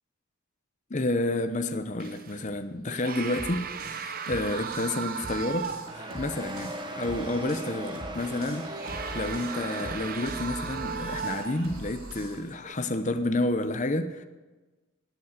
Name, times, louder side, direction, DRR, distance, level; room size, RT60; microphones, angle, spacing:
voice 1, 0.9-14.2, left 2 dB, 35° left, 0.8 m, -30 dB
sound 1, 2.0-2.4 2.9-6.1 6.5-6.6 8.1-11.8 12.5-12.7, right 7 dB, 40° right, 0.7 m, -37 dB
sound 2, 3.1-12.4, right 1 dB, 75° right, 3.6 m, -43 dB
sound 3, 5.9-11.0, right 1 dB, 20° right, 1.2 m, -39 dB
18.5 x 8.8 x 8.1 m
head